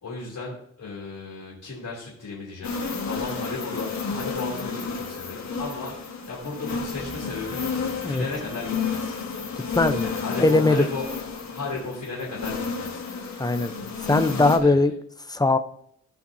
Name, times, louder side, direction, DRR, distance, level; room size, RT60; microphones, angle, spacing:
voice 1, 0.0-2.7 3.1-7.6 8.0-9.2 10.0-13.0 14.6-14.8, left 3 dB, 75° left, -6 dB, 2.9 m, -35 dB
sound 1, 2.6-14.6, left 5 dB, 60° left, 1.5 m, -31 dB
sound 2, 6.9-14.2, right 1 dB, 40° right, 2.4 m, -48 dB
voice 2, 9.8-10.1 10.4-10.8 13.4-13.7 14.0-14.9 15.3-15.6, left 2 dB, 10° left, 10 dB, 0.6 m, -20 dB
16.5 x 5.8 x 2.7 m, 0.70 s
wide cardioid pair, 90°, 32 cm